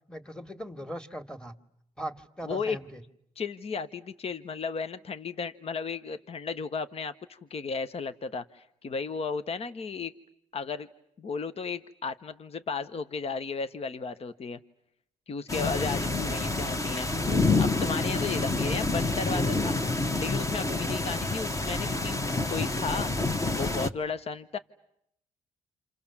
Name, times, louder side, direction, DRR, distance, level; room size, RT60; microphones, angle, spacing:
voice 1, 0.1-1.5 2.0-3.0, equal, 5° left, 9 dB, 2.1 m, -39 dB
voice 2, 2.4-2.8 3.4-10.1 10.5-10.9 11.2-14.6 15.3-17.1 17.6-19.8 20.2-22.2 22.5-23.1 23.5-24.6, left 5 dB, 45° left, 12 dB, 1.1 m, -34 dB
sound 1, 15.5-23.9, left 3 dB, 25° left, 1.5 m, -28 dB
28.5 x 28.0 x 7.3 m, 0.77 s
supercardioid pair, 65°, 14 cm